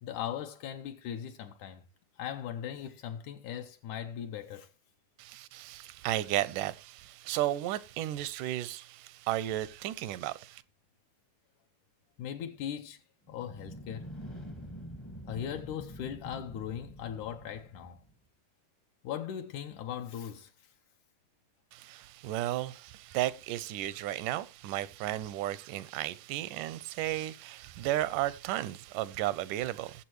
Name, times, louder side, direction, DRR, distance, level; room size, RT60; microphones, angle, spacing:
voice 1, 0.0-1.8 2.2-4.7 12.2-13.0 13.3-14.1 15.3-18.0 19.0-20.7, left 9 dB, 75° left, 2.2 m, -39 dB
voice 2, 5.2-10.6 21.7-30.0, right 14 dB, 85° right, 2.3 m, -34 dB
sound 1, 13.3-18.1, equal, 20° left, 0.7 m, -46 dB
20.5 x 7.5 x 3.1 m
omnidirectional pair, 3.7 m